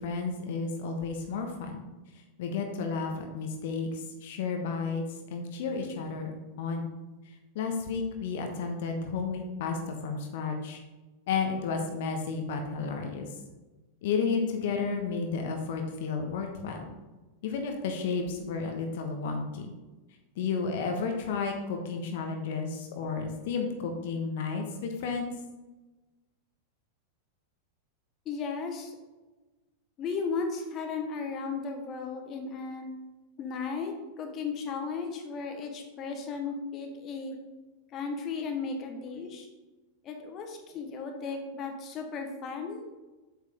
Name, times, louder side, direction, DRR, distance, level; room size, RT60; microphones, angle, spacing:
voice 1, 0.0-1.8 2.4-5.0 5.3-6.3 6.6-6.9 7.5-10.8 11.3-13.3 14.0-16.9 17.4-19.7 20.4-25.3, left 5 dB, 55° left, 4 dB, 1.1 m, -32 dB
voice 2, 28.2-28.9 30.0-32.8 33.4-37.4 37.9-39.5 40.0-42.9, left 5 dB, 30° left, 3 dB, 1.1 m, -35 dB
8.1 x 6.4 x 3.5 m, 1.1 s
figure-of-eight pair, 90°, 0 cm